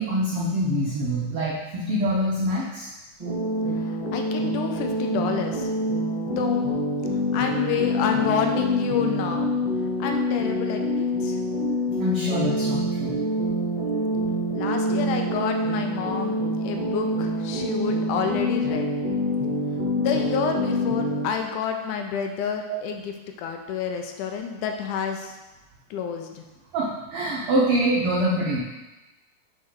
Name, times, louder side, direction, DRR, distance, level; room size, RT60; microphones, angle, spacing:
voice 1, 0.0-2.9 12.0-13.2 22.7-22.8 26.7-28.6, right 1 dB, 85° right, -4 dB, 1.2 m, -25 dB
sound 1, 3.2-21.3, equal, 15° right, 1.3 m, -26 dB
voice 2, 3.8-5.7 6.4-6.7 7.3-9.5 10.0-11.4 14.5-18.9 20.0-23.1 23.4-25.4 25.9-26.4, left 7 dB, 80° left, 4 dB, 2.0 m, -29 dB
6.9 x 4.2 x 4.7 m, 1.1 s
omnidirectional pair, 3.7 m